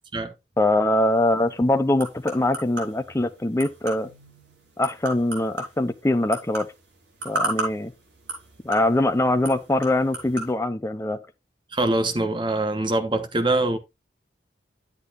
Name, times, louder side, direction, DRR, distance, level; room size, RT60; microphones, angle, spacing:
voice 1, 0.6-4.1 4.8-6.7 7.2-7.9 8.6-11.2, left 1 dB, 15° left, 0.5 m, -23 dB
sound 1, 1.1-10.5, right 2 dB, 75° right, 4.4 m, -36 dB
voice 2, 11.7-13.8, right 2 dB, 25° right, 1.2 m, -23 dB
10.5 x 8.3 x 2.5 m
head